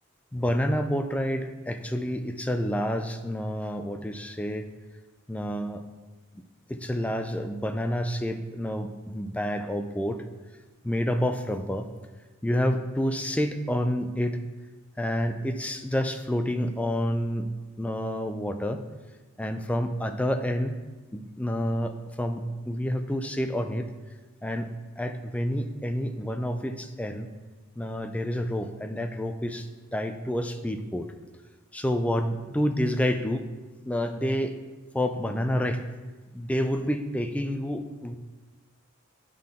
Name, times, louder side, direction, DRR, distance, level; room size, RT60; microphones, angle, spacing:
voice 1, 0.3-4.7 5.3-5.8 6.7-10.2 10.8-11.9 12.4-14.4 15.0-17.5 17.8-18.8 19.4-20.8 21.1-23.9 24.4-24.7 25.0-27.3 27.8-31.1 31.7-33.5 33.8-34.6 34.9-35.8 36.3-38.2, equal, 5° left, 7 dB, 0.3 m, -29 dB
10.5 x 3.8 x 3.6 m, 1.2 s
head